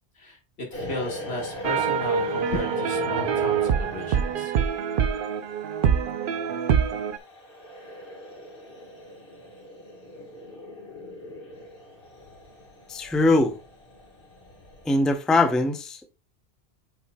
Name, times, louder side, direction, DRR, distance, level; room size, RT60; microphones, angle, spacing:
voice 1, 0.2-4.5, left 2 dB, 70° left, 2.1 m, -34 dB
sound 1, 0.7-15.1, left 1 dB, 55° left, 1.7 m, -41 dB
sound 2, 1.6-7.2, right 7 dB, 60° right, 0.7 m, -25 dB
voice 2, 12.9-13.6 14.9-16.1, left 2 dB, ahead, 0.5 m, -22 dB
8.1 x 5.7 x 2.2 m
omnidirectional pair, 1.1 m